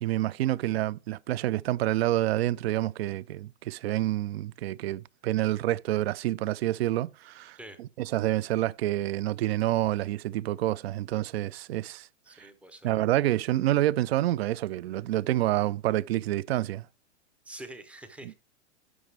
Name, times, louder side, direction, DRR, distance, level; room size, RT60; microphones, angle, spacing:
voice 1, 0.0-12.1 12.4-12.5 12.8-16.9, right 14 dB, 60° right, 0.4 m, -28 dB
voice 2, 12.2-13.0 17.5-18.3, right 1 dB, 5° right, 0.5 m, -45 dB
11.0 x 5.3 x 3.3 m
hypercardioid pair, 145°, 37 cm